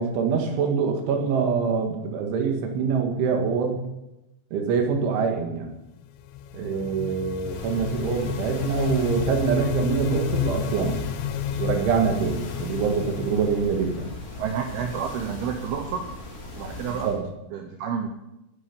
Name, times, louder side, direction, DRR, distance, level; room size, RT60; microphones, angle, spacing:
voice 1, 0.0-3.8 4.5-5.7 6.5-11.0 11.5-14.1 16.9-17.2, right 6 dB, 90° right, 3 dB, 4.4 m, -25 dB
sound 1, 6.0-14.8, left 9 dB, 85° left, 3.2 m, -32 dB
sound 2, 7.4-17.2, left 1 dB, 70° left, 6.8 m, -39 dB
voice 2, 14.4-16.1 16.6-18.1, right 7 dB, 70° right, 4 dB, 2.6 m, -30 dB
19.0 x 11.0 x 5.5 m, 0.94 s
omnidirectional pair, 5.3 m